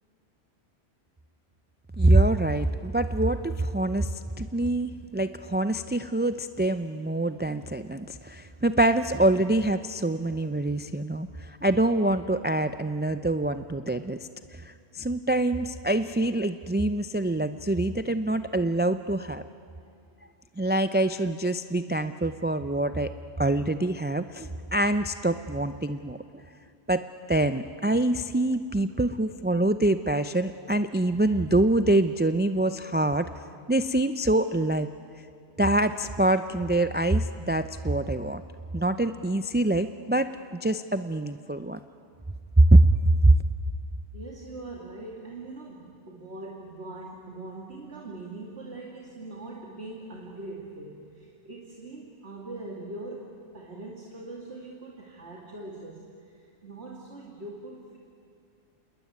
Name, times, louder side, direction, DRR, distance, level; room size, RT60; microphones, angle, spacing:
voice 1, 2.0-14.2 14.5-19.4 20.6-23.1 23.4-26.2 26.9-27.0 27.3-33.3 33.7-34.9 35.6-38.4 38.7-40.3 40.6-41.8 42.6-43.0, right 1 dB, 15° right, 10 dB, 0.3 m, -25 dB
voice 2, 44.1-58.0, right 2 dB, 70° right, -2 dB, 2.6 m, -42 dB
27.5 x 20.5 x 9.5 m, 2.4 s
omnidirectional pair, 1.1 m